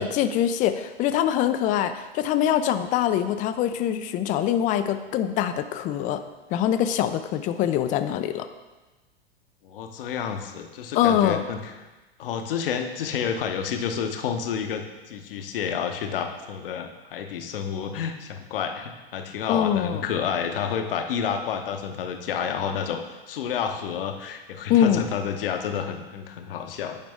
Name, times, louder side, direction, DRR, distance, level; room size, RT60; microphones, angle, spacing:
voice 1, 0.0-6.2 6.5-8.5 10.9-11.4 19.5-20.1 24.7-25.0, left 10 dB, 25° left, 10 dB, 0.4 m, -23 dB
voice 2, 9.6-11.6 12.2-23.0 23.3-27.0, left 7 dB, 65° left, 5 dB, 0.9 m, -30 dB
8.8 x 5.1 x 3.5 m, 1.2 s
figure-of-eight pair, 90°, 31 cm